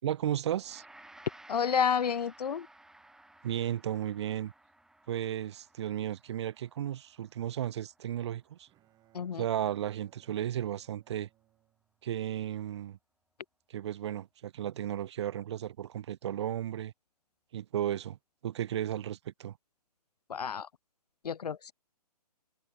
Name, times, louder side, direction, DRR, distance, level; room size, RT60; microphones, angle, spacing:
voice 1, 0.0-0.9 3.4-4.5 5.1-8.7 9.3-11.3 12.0-13.0 13.7-16.9 17.5-18.2 18.4-19.6, right 11 dB, 45° right, 0.5 m, -34 dB
Gong, 0.6-10.0, right 1 dB, ahead, 2.3 m, -58 dB
voice 2, 1.5-2.7 9.1-9.4 20.3-20.7 21.2-21.7, left 7 dB, 75° left, 0.6 m, -30 dB
Bowed string instrument, 8.2-12.4, right 15 dB, 20° right, 4.0 m, -67 dB
figure-of-eight pair, 135°, 20 cm